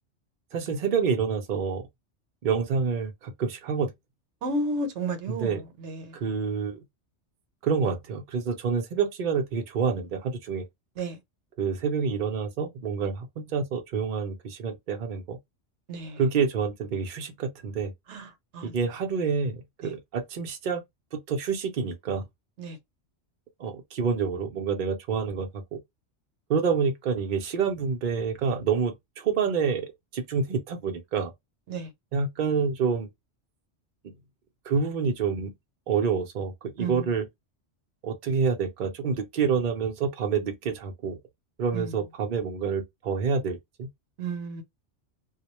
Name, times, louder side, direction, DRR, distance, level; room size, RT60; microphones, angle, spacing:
voice 1, 0.5-1.8 2.4-3.9 5.3-5.6 6.1-6.8 7.6-10.6 11.6-15.4 16.2-17.9 18.6-20.8 21.1-22.3 23.6-25.8 26.5-29.9 30.1-31.3 32.1-33.1 34.6-35.5 35.9-37.3 38.0-41.2 41.6-43.9, right 5 dB, 55° right, 0.6 m, -27 dB
voice 2, 4.4-5.5 5.8-6.1 11.0-11.2 15.9-16.2 18.1-18.2 18.5-18.7 19.8-19.9 22.6-22.8 31.7-31.9 36.8-37.0 41.7-41.9 44.2-44.6, right 2 dB, 75° right, 1.0 m, -32 dB
2.3 x 2.1 x 2.9 m
omnidirectional pair, 1.2 m